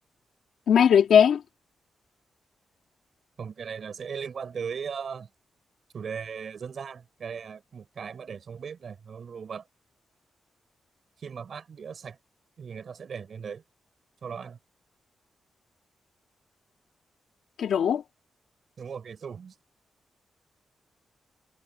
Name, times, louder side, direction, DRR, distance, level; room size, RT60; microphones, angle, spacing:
voice 1, 0.7-1.4 17.6-18.0, left 8 dB, 80° left, 2.4 m, -19 dB
voice 2, 3.4-5.3 5.9-9.7 11.2-12.2 12.6-13.6 14.2-14.6 18.8-19.5, right 6 dB, 50° right, 6.7 m, -38 dB
wide cardioid pair, 150°, 0 cm